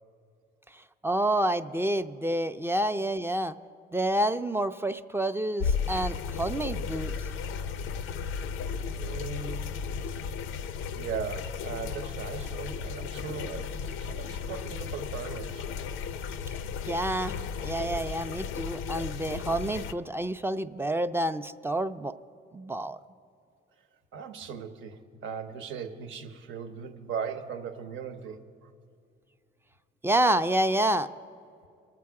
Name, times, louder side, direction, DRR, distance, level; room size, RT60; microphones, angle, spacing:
voice 1, 1.0-3.6 3.9-7.1 16.9-17.4 17.6-22.1 22.5-23.0 30.0-31.1, right 1 dB, 10° right, 10 dB, 0.4 m, -28 dB
sound 1, 5.6-19.9, left 6 dB, 90° left, 0.5 m, -34 dB
voice 2, 9.0-9.7 10.9-15.7 24.1-28.4, right 6 dB, 80° right, 8 dB, 0.9 m, -38 dB
22.5 x 7.5 x 4.7 m, 2.4 s
cardioid pair, 90°, 20 cm